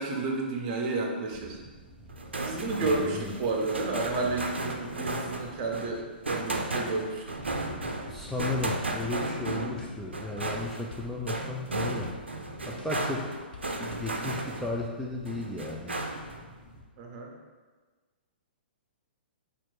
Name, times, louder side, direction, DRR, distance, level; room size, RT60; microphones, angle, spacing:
voice 1, 0.0-1.6 2.4-7.4 12.7-12.9 17.0-17.3, right 3 dB, 40° right, 1 dB, 0.8 m, -31 dB
sound 1, 1.3-16.8, right 1 dB, 15° right, 1.1 m, -50 dB
sound 2, 2.1-14.9 15.2-16.4, right 2 dB, 85° right, 0.5 m, -34 dB
voice 2, 2.9-3.3 8.1-12.1 12.7-13.3 13.7-16.0, left 2 dB, ahead, -3 dB, 0.4 m, -34 dB
sound 3, 8.2-8.7 9.0-10.2 10.5-13.2 13.5-14.9, left 5 dB, 65° left, 0.6 m, -50 dB
4.3 x 2.5 x 4.5 m, 1.4 s
figure-of-eight pair, 120°, 6 cm